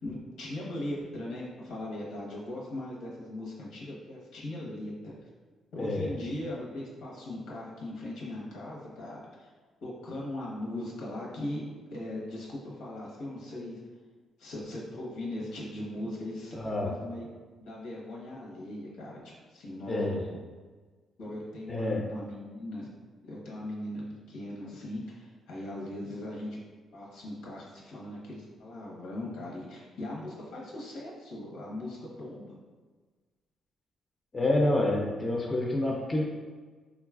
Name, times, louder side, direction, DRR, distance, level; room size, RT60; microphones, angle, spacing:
voice 1, 0.0-5.1 5.7-9.5 9.8-11.6 11.9-13.8 14.4-17.3 17.7-19.2 19.5-20.1 21.2-22.9 23.3-24.0 24.3-26.6 26.9-32.6, left 1 dB, 85° left, -4 dB, 0.9 m, -39 dB
voice 2, 5.8-6.1 16.5-16.9 19.9-20.2 21.7-22.1 34.3-36.2, left 1 dB, 25° left, 0 dB, 0.5 m, -28 dB
3.7 x 2.3 x 2.4 m, 1.4 s
cardioid pair, 90°, 0 cm